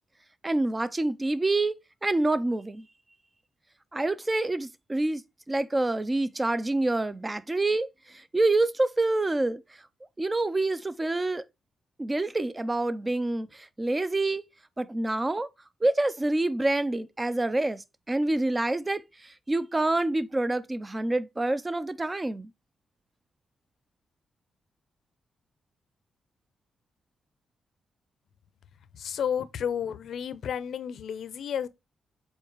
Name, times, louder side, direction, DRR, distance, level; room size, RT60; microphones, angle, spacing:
voice 1, 0.4-2.8 3.9-5.2 5.5-9.6 10.2-11.4 12.0-14.4 14.8-15.5 15.8-22.5, right 2 dB, 20° right, 0.6 m, -27 dB
voice 2, 28.9-31.7, left 8 dB, 75° left, 0.7 m, -31 dB
7.2 x 4.6 x 3.1 m
cardioid pair, 95°, 0 cm